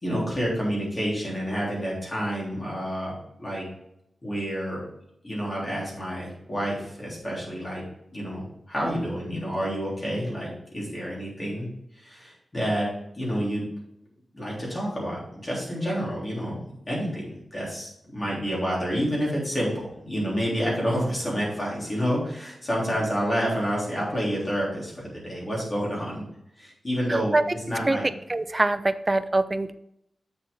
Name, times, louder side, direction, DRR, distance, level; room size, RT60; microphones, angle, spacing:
voice 1, 0.0-3.1 3.4-3.6 4.2-4.8 5.2-7.8 8.1-12.9 13.1-13.6 14.3-16.6 16.9-26.2 26.6-27.4 27.7-28.1, equal, 25° left, -5 dB, 3.5 m, -29 dB
voice 2, 27.1-27.4 27.9-28.0 28.3-29.7, right 2 dB, 25° right, 12 dB, 0.4 m, -24 dB
7.4 x 7.0 x 3.7 m, 0.77 s
wide cardioid pair, 140°, 0 cm